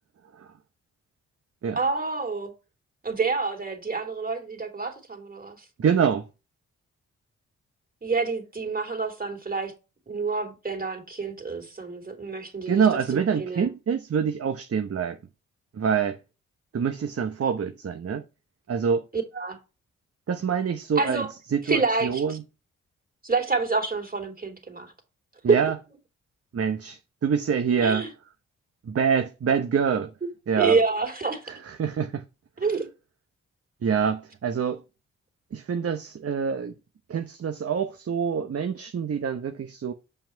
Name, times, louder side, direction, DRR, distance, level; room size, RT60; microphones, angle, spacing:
voice 1, 1.7-2.5 3.0-5.6 8.0-9.7 10.1-12.8 13.1-13.7 19.1-19.6 20.9-21.3 21.6-22.4 23.2-24.9 25.5-25.6 27.8-28.1 30.6-31.4 32.6-32.9, right 4 dB, 25° right, 3.2 m, -27 dB
voice 2, 5.8-6.3 12.7-15.2 15.7-16.2 16.7-18.2 18.7-19.1 20.3-21.2 21.5-22.4 25.4-25.7 26.5-28.1 28.9-30.1 30.5-30.8 31.8-32.2 33.8-34.8 35.5-36.7 37.1-39.9, right 7 dB, 45° right, 1.0 m, -25 dB
7.4 x 5.5 x 4.5 m
hypercardioid pair, 40°, 32 cm